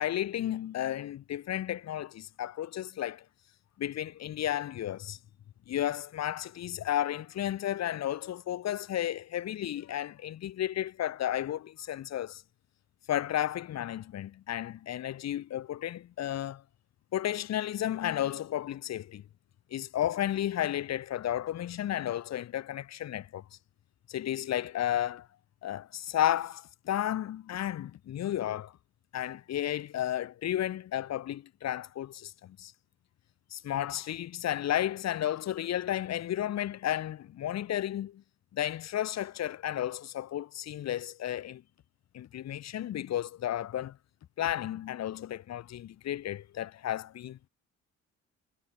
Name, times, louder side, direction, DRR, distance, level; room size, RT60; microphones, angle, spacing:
voice 1, 0.0-3.2 3.8-5.2 5.7-12.4 13.1-16.6 17.1-19.2 19.7-23.4 24.1-25.3 25.6-28.7 29.1-32.7 33.5-38.2 38.5-41.6 42.1-44.0 44.4-47.4, left 12 dB, 60° left, 1.0 m, -33 dB
cardioid pair, 90°, 30 cm